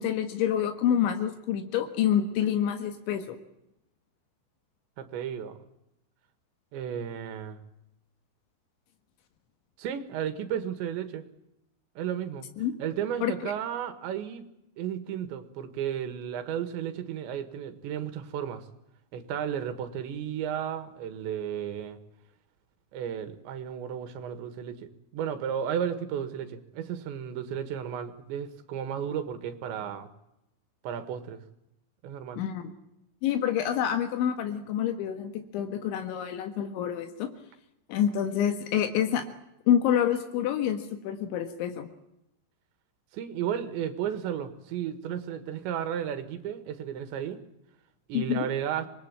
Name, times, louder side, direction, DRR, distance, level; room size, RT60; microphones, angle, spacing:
voice 1, 0.0-3.4 12.6-12.7 13.2-13.5 32.4-32.7 33.2-37.3 37.9-39.3 39.7-41.9 48.1-48.5, left 9 dB, 85° left, 7 dB, 4.0 m, -27 dB
voice 2, 5.0-5.6 6.7-7.6 9.8-11.2 12.0-12.5 12.8-14.5 14.8-18.7 19.1-22.0 22.9-30.1 30.8-31.4 32.0-32.4 43.1-47.4 48.1-48.9, right 9 dB, 80° right, 10 dB, 3.8 m, -33 dB
26.0 x 20.5 x 8.8 m, 0.84 s
omnidirectional pair, 5.2 m